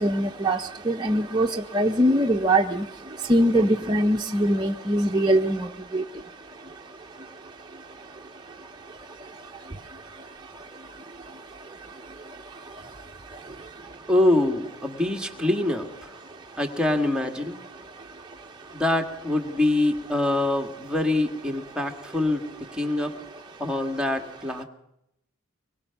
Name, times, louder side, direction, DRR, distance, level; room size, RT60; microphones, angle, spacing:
voice 1, 0.0-1.5 1.7-2.8 3.3-5.7 5.9-6.0, right 1 dB, 20° right, 1 dB, 0.8 m, -22 dB
voice 2, 14.1-16.1 16.6-17.6 18.7-22.4 22.7-23.1 23.6-24.6, left 1 dB, 5° right, 2 dB, 1.8 m, -24 dB
24.5 x 22.0 x 5.9 m, 0.83 s
head